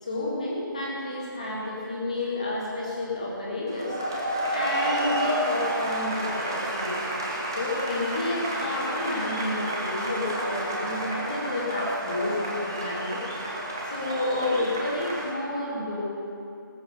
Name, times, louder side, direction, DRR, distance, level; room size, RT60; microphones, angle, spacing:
voice 1, 0.0-4.0 4.5-7.0 7.6-13.2 13.8-16.1, left 2 dB, 20° left, -4 dB, 1.9 m, -30 dB
sound 1, 3.7-15.3, right 1 dB, 10° right, 0.7 m, -30 dB
19.0 x 7.6 x 5.6 m, 2.6 s
figure-of-eight pair, 180°, 12 cm